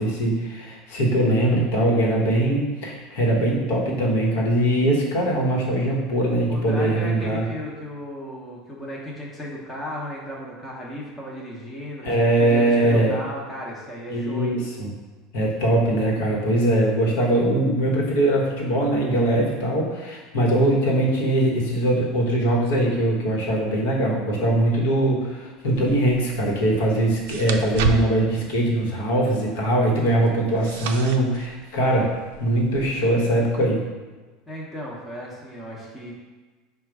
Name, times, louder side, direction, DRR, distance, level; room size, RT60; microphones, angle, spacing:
voice 1, 0.0-7.4 12.0-13.2 14.1-14.9 15.3-32.1 32.4-33.8, right 1 dB, 80° left, -2 dB, 1.1 m, -21 dB
voice 2, 6.5-12.1 12.4-14.6 34.5-36.1, equal, 10° left, -4 dB, 0.7 m, -35 dB
sound 1, 25.7-32.9, right 4 dB, 85° right, 0.3 m, -33 dB
5.0 x 2.3 x 4.6 m, 1.3 s
supercardioid pair, 165°, 0 cm